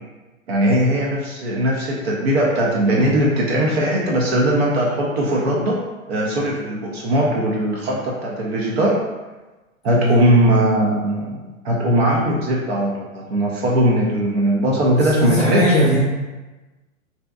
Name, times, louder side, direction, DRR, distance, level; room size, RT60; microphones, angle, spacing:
voice 1, 0.5-5.8 6.1-9.0 9.8-15.6, right 1 dB, 50° right, -3 dB, 0.6 m, -19 dB
voice 2, 15.0-16.0, equal, 15° left, -8 dB, 0.8 m, -19 dB
2.7 x 2.1 x 2.3 m, 1.2 s
hypercardioid pair, 115°, 42 cm